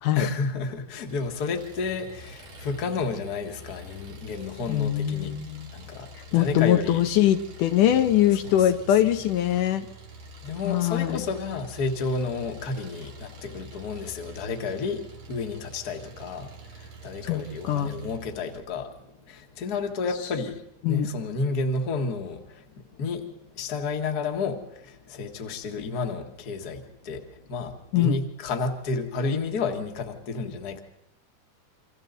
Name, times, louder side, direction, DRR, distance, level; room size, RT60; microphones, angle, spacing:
voice 1, 0.1-5.4 5.7-7.0 7.8-8.0 8.4-9.0 10.4-30.8, left 4 dB, 40° left, 4 dB, 1.7 m, -31 dB
Engine, 1.1-18.6, right 1 dB, 75° right, 4.1 m, -46 dB
voice 2, 4.7-5.7 6.3-9.9 10.6-11.2 17.2-18.0 20.8-21.1 27.9-28.2, left 12 dB, 80° left, 8 dB, 2.5 m, -22 dB
28.0 x 25.0 x 4.0 m, 0.80 s
omnidirectional pair, 3.7 m